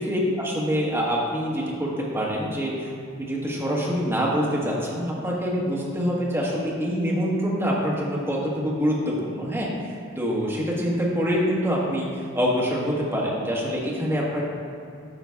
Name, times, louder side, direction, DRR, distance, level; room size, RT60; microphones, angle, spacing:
voice 1, 0.0-2.9 3.2-14.4, equal, 10° right, -5 dB, 1.3 m, -25 dB
9.4 x 5.9 x 3.5 m, 2.5 s
head